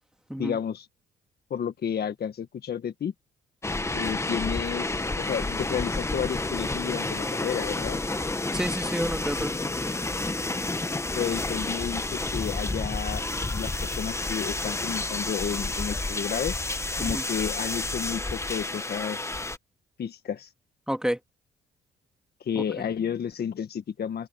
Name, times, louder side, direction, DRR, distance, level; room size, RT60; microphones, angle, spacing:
voice 1, 0.4-0.9 1.5-3.1 3.9-8.0 11.1-16.5 17.0-19.4 20.0-20.5 22.4-24.3, left 8 dB, 55° left, 1.6 m, -31 dB
sound 1, 3.6-19.6, left 2 dB, 15° left, 1.2 m, -30 dB
voice 2, 8.5-9.5 17.0-17.2 20.9-21.2 22.6-22.9, equal, 5° right, 2.2 m, -30 dB
open air
cardioid pair, 90°, 20 cm